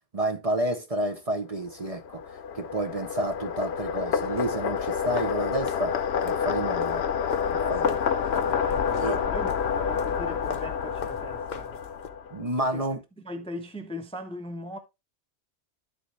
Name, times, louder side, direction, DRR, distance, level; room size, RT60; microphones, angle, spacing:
voice 1, 0.1-2.2 2.5-6.0 6.2-7.0 7.5-7.9 8.9-9.2 12.3-13.0, right 1 dB, 35° right, 0.9 m, -30 dB
sound 1, 1.7-12.4, left 7 dB, 70° left, 1.0 m, -28 dB
sound 2, 4.8-12.1, left 6 dB, 45° left, 0.8 m, -42 dB
voice 2, 7.6-11.8 12.6-12.9 13.2-14.8, equal, 5° left, 0.6 m, -39 dB
12.5 x 4.2 x 3.2 m
omnidirectional pair, 1.1 m